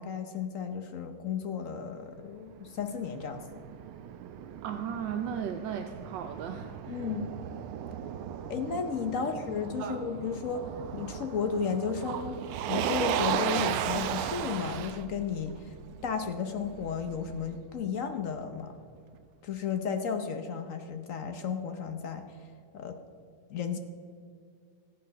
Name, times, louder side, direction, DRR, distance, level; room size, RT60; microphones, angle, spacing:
voice 1, 0.0-3.4 6.9-7.3 8.5-10.6 10.9-12.4 12.7-15.7 16.0-18.7 19.4-22.5 22.7-23.0 23.5-23.8, left 6 dB, 65° left, 7 dB, 0.8 m, -33 dB
Motor vehicle (road), 2.5-17.5, right 9 dB, 85° right, 1.5 m, -36 dB
voice 2, 4.6-7.1 9.8-10.0 10.5-10.6, right 8 dB, 70° right, 6 dB, 1.2 m, -36 dB
14.0 x 9.1 x 6.5 m, 2.3 s
omnidirectional pair, 2.4 m